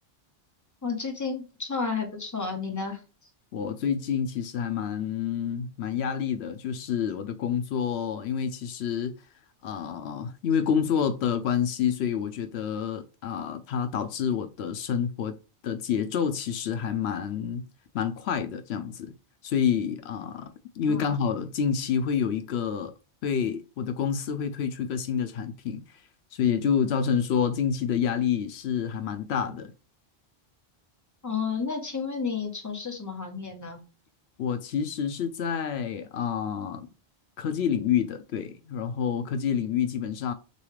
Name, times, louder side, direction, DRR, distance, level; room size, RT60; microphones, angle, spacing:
voice 1, 0.8-3.0 20.9-21.1 31.2-33.8, left 5 dB, 20° left, 1.0 m, -31 dB
voice 2, 3.5-9.1 9.6-15.4 15.6-17.6 17.9-19.1 19.4-22.9 23.2-26.0 26.3-29.7 34.4-36.9 37.4-40.3, left 7 dB, 80° left, 0.8 m, -28 dB
6.7 x 2.4 x 3.2 m
omnidirectional pair, 1.1 m